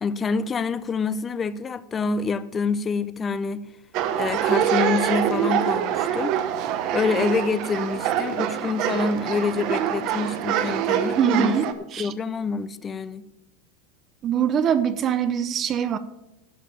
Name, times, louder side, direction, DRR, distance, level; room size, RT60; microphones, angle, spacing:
voice 1, 0.0-3.7 4.1-6.4 6.9-11.6 12.0-13.3, left 5 dB, 20° left, 0.5 m, -26 dB
sound 1, 3.9-11.7, right 10 dB, 45° right, 1.0 m, -25 dB
voice 2, 11.2-12.1 14.2-16.0, right 8 dB, 30° right, 0.6 m, -23 dB
11.5 x 6.6 x 7.0 m
supercardioid pair, 155°, 0 cm